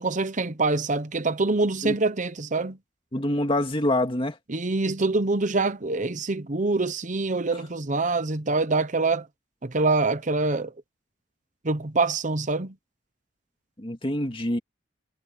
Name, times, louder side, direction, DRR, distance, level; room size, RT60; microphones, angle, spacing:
voice 1, 0.0-2.8 4.5-9.2 9.6-10.7 11.6-12.7, right 3 dB, 45° right, 1.0 m, -25 dB
voice 2, 3.1-4.4 7.5-7.6 13.8-14.6, left 1 dB, 30° left, 2.4 m, -26 dB
head